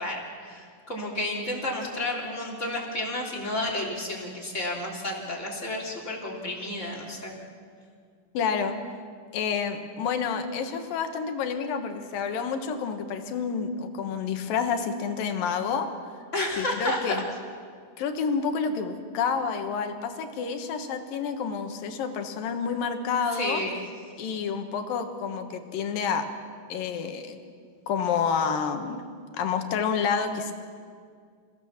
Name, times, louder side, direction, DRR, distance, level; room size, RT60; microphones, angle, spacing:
voice 1, 0.0-7.3 16.3-17.2 23.4-23.8, left 1 dB, 20° left, -2 dB, 3.6 m, -31 dB
voice 2, 8.3-8.8 9.3-15.9 16.6-17.2 18.0-23.6 24.2-26.3 26.7-27.4 27.9-29.0 29.4-30.5, left 6 dB, 85° left, 6 dB, 3.2 m, -29 dB
28.0 x 16.5 x 7.4 m, 2.1 s
omnidirectional pair, 3.9 m